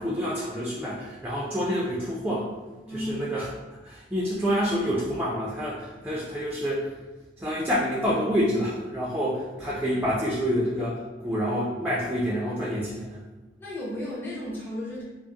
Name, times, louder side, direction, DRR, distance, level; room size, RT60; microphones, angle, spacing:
voice 1, 0.0-2.5 2.9-3.5 3.8-6.9 7.4-13.2, equal, 10° right, -6 dB, 0.4 m, -27 dB
voice 2, 2.8-3.3 13.6-15.0, left 1 dB, 10° left, -8 dB, 0.8 m, -34 dB
4.8 x 2.1 x 2.8 m, 1.2 s
head